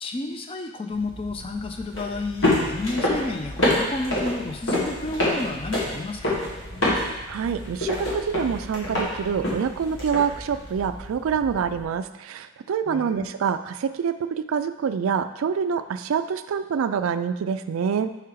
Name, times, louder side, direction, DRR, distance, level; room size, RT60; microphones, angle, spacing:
voice 1, 0.0-6.4 12.9-13.3, left 2 dB, 25° left, 5 dB, 0.4 m, -31 dB
sound 1, 0.9-11.8, left 1 dB, 65° left, 1.5 m, -28 dB
voice 2, 6.9-18.1, right 7 dB, 85° right, 11 dB, 0.3 m, -26 dB
4.8 x 4.8 x 4.6 m, 1.1 s
head